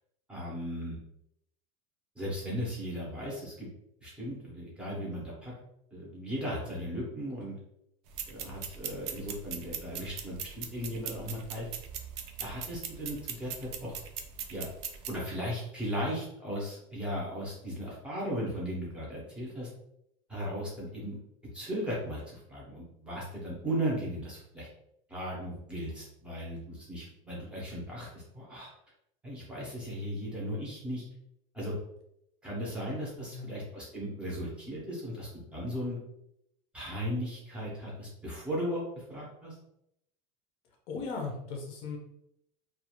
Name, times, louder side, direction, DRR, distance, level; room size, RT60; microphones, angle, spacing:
voice 1, 0.3-1.0 2.2-3.7 4.0-5.5 5.9-7.5 8.3-11.7 12.4-13.5 13.8-14.0 14.5-14.7 15.1-19.7 20.3-21.2 21.5-24.7 25.1-28.7 29.2-31.0 31.5-31.7 32.4-36.0 36.7-38.8 39.1-39.6, equal, 5° right, -5 dB, 0.7 m, -36 dB
sound 1, 8.1-15.2, right 8 dB, 55° right, 0.4 m, -40 dB
voice 2, 33.2-33.6 40.9-42.0, left 4 dB, 35° left, 0 dB, 0.6 m, -38 dB
2.4 x 2.3 x 2.9 m, 0.78 s
cardioid pair, 180°, 17 cm